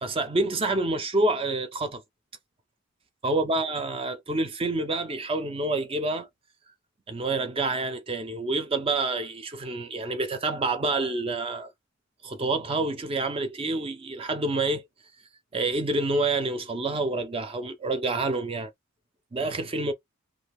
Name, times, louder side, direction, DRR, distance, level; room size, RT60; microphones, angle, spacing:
voice 1, 0.0-2.0 3.2-6.3 7.1-11.7 12.2-14.8 15.5-18.7 19.3-19.9, right 2 dB, 25° right, 0.4 m, -27 dB
2.3 x 2.2 x 3.3 m
head